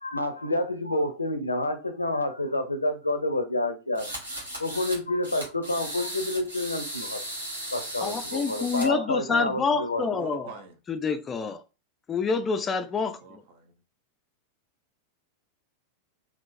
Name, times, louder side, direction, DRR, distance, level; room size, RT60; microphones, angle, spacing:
voice 1, 0.0-4.1 4.6-7.2 7.7-10.0, left 1 dB, 80° left, 0.5 m, -28 dB
sound 1, 3.9-5.0 5.2-8.9, right 1 dB, 75° right, 1.2 m, -36 dB
voice 2, 8.0-10.5 10.9-11.6 12.1-13.4, left 5 dB, 20° left, 0.4 m, -27 dB
voice 3, 10.0-10.8 13.1-13.7, right 4 dB, 50° right, 0.8 m, -42 dB
3.6 x 2.4 x 2.6 m
figure-of-eight pair, 90°, 0 cm